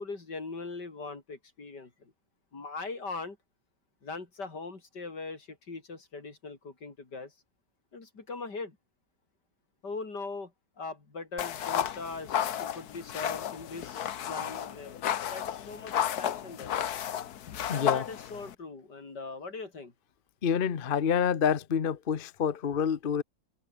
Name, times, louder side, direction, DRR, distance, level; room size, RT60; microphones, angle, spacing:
voice 1, 0.0-2.1 2.5-3.4 4.0-7.3 7.9-8.8 9.8-10.5 10.8-15.0 15.3-16.7 17.7-19.9, left 3 dB, 85° left, 4.5 m, -40 dB
sound 1, 11.4-18.6, left 10 dB, 70° left, 1.5 m, -33 dB
voice 2, 17.7-18.0 20.4-23.2, left 7 dB, 40° left, 1.0 m, -27 dB
omnidirectional pair, 1.8 m